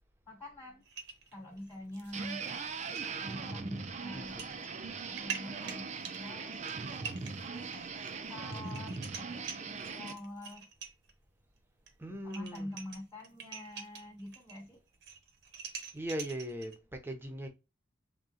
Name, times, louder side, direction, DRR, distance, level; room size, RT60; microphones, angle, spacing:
voice 1, 0.3-0.8 1.3-2.5 3.2-4.4 5.1-8.0 8.3-10.7 12.1-14.8, left 1 dB, 15° left, 1.1 m, -46 dB
sound 1, 0.9-2.1 2.5-2.6 3.0-3.1 4.1-4.5 4.9-11.1 11.9-12.0 12.2-14.6 14.9-16.8, right 6 dB, 60° right, 0.9 m, -45 dB
sound 2, 2.1-10.1, right 5 dB, 35° right, 0.4 m, -40 dB
voice 2, 4.7-5.1 12.0-12.7 15.9-17.5, right 1 dB, 10° right, 0.7 m, -40 dB
3.7 x 2.3 x 4.1 m
head